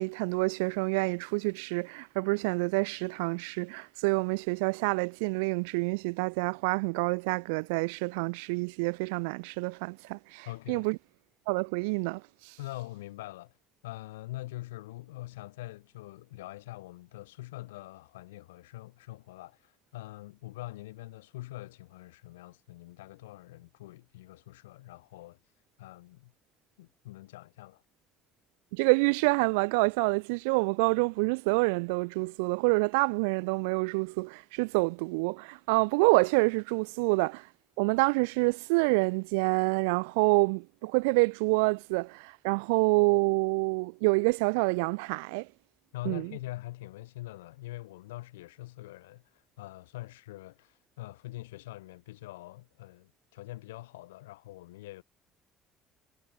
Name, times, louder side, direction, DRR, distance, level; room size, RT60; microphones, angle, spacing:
voice 1, 0.0-11.0 11.5-12.2 28.7-37.5 37.8-45.5 46.1-46.3, right 30 dB, 80° right, 0.8 m, -27 dB
voice 2, 10.4-10.9 12.6-13.5 13.8-25.4 25.8-26.3 26.8-27.8 45.9-55.0, left 17 dB, 85° left, 7.6 m, -44 dB
hypercardioid pair, 60°, 0 cm